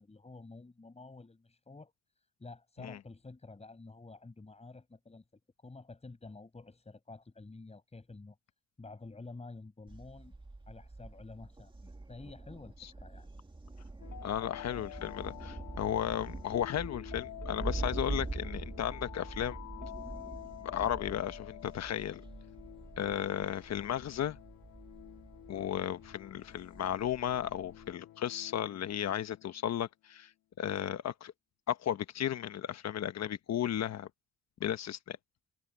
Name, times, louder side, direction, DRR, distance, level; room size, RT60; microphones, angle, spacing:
voice 1, 0.0-1.9 2.4-5.2 5.6-8.4 8.8-10.3 10.7-13.3, left 3 dB, 20° left, 6.3 m, -50 dB
Thunder, 9.9-27.9, right 2 dB, 15° right, 2.4 m, -44 dB
sound 1, 14.0-29.7, left 14 dB, 85° left, 2.3 m, -49 dB
voice 2, 14.2-19.6 20.6-22.2 23.0-24.4 25.5-30.3 30.6-31.3 31.7-34.1 34.6-35.2, left 10 dB, 60° left, 1.3 m, -34 dB
cardioid pair, 90°, 30 cm